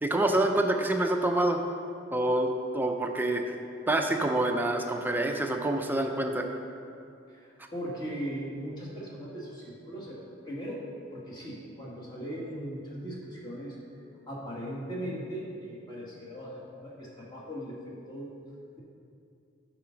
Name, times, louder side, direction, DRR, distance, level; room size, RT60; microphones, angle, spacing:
voice 1, 0.0-1.6 2.1-3.5 3.9-6.5, right 1 dB, 10° right, 3 dB, 0.5 m, -27 dB
voice 2, 7.3-10.2 10.5-10.9 11.1-13.8 14.3-18.3, equal, 20° left, -5 dB, 1.7 m, -39 dB
8.9 x 4.9 x 5.8 m, 2.5 s
head